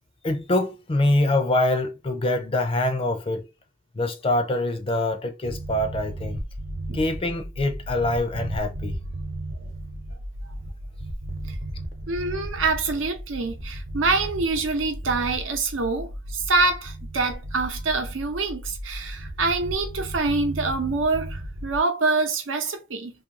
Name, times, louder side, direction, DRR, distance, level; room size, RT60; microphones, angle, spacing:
voice 1, 0.2-3.5 3.9-6.4 6.9-9.0, left 1 dB, 30° left, 0.4 m, -24 dB
sound 1, 5.4-21.8, right 1 dB, 60° right, 0.8 m, -35 dB
voice 2, 12.1-23.1, right 3 dB, 90° right, 0.7 m, -25 dB
2.6 x 2.4 x 2.9 m
head